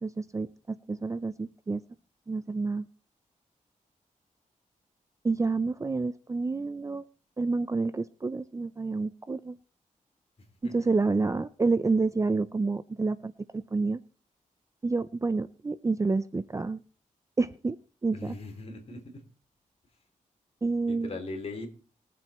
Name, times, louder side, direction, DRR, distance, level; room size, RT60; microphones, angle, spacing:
voice 1, 0.0-1.8 2.3-2.9 5.2-7.1 7.4-9.6 10.7-14.0 14.8-16.8 17.4-17.8 18.0-18.3 20.6-21.1, right 3 dB, 20° right, 14 dB, 0.5 m, -29 dB
voice 2, 10.4-10.9 18.1-19.2 20.8-21.7, left 2 dB, 45° left, 4 dB, 3.3 m, -40 dB
21.0 x 7.6 x 4.3 m, 0.37 s
wide cardioid pair, 125°, 14 cm